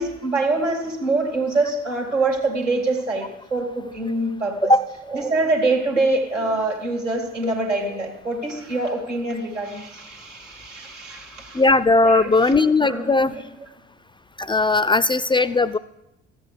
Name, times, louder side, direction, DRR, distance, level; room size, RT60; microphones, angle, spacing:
voice 1, 0.0-4.7 5.1-11.6 12.0-12.4 12.8-13.4, right 2 dB, 90° right, 0 dB, 2.4 m, -25 dB
voice 2, 11.5-13.3 14.4-15.8, left 3 dB, 15° left, 18 dB, 0.4 m, -18 dB
14.0 x 8.1 x 6.5 m, 0.86 s
figure-of-eight pair, 50°, 36 cm